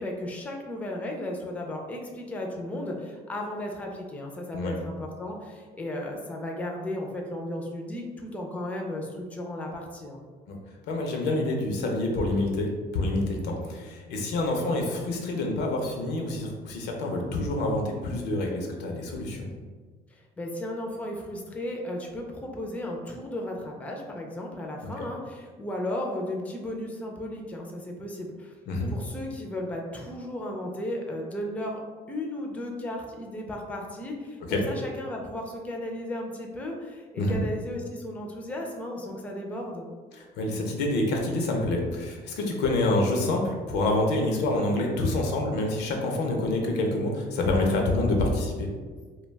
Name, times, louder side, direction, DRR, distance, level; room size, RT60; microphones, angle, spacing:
voice 1, 0.0-10.2 20.1-28.5 28.9-31.8 32.1-39.9, left 1 dB, 10° left, 0 dB, 0.4 m, -35 dB
voice 2, 10.9-12.7 12.9-19.5 25.0-25.1 28.7-28.9 34.5-34.6 37.2-37.4 40.1-48.7, left 2 dB, 85° left, 1 dB, 0.6 m, -27 dB
2.2 x 2.2 x 3.2 m, 1.5 s
cardioid pair, 110°, 17 cm